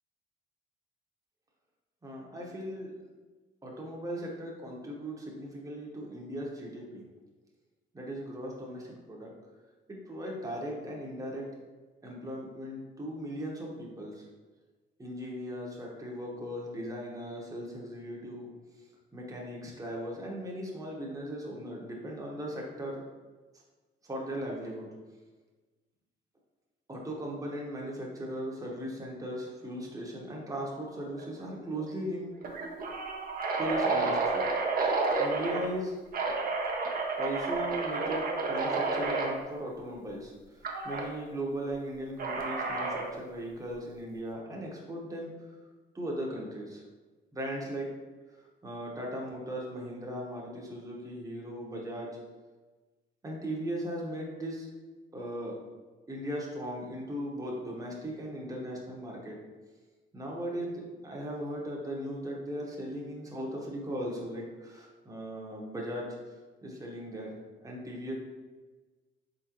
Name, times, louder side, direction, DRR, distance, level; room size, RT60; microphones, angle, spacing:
voice 1, 2.0-2.9 3.6-7.0 7.9-9.3 9.9-11.5 12.0-14.3 15.0-18.5 19.1-23.0 24.0-24.9 26.9-32.3 33.6-34.5 34.9-36.0 37.2-45.6 45.9-46.8 47.3-47.9 48.3-52.1 53.2-54.7 55.1-55.6 56.1-59.4 60.1-66.1 66.6-68.1, equal, 15° right, -2 dB, 1.0 m, -38 dB
sound 1, 31.2-31.5 31.8-31.9 32.4-35.7 36.1-39.3 40.6-41.1 42.2-43.1, right 3 dB, 45° right, 0.8 m, -30 dB
3.8 x 3.7 x 3.0 m, 1.3 s
cardioid pair, 90°, 20 cm